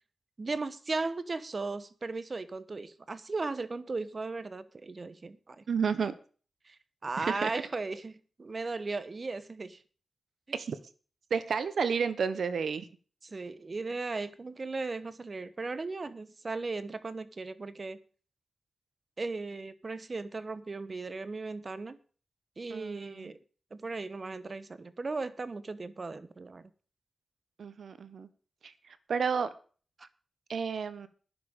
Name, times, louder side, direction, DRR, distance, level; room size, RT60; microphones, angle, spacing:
voice 1, 0.4-5.6 6.6-9.8 13.2-18.0 19.2-22.0 22.6-23.4 23.7-26.7 30.0-30.1, right 3 dB, 45° right, 1.2 m, -37 dB
voice 2, 5.7-6.1 7.2-7.5 10.5-10.8 11.3-12.9 22.7-23.3 27.6-28.3 28.6-29.5 30.5-31.1, right 6 dB, 80° right, 1.2 m, -31 dB
10.5 x 7.3 x 8.9 m
cardioid pair, 55°, 0 cm